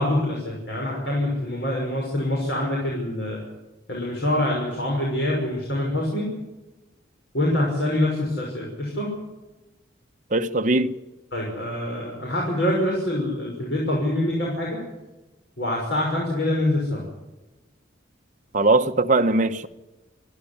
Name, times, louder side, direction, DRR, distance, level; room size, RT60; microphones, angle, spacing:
voice 1, 0.0-3.4 3.9-6.3 7.3-9.1 11.3-14.8 15.6-17.0, left 1 dB, 60° left, 6.0 m, -25 dB
voice 2, 10.3-10.9 18.5-19.7, right 2 dB, 40° right, 1.0 m, -20 dB
27.0 x 12.0 x 10.0 m
head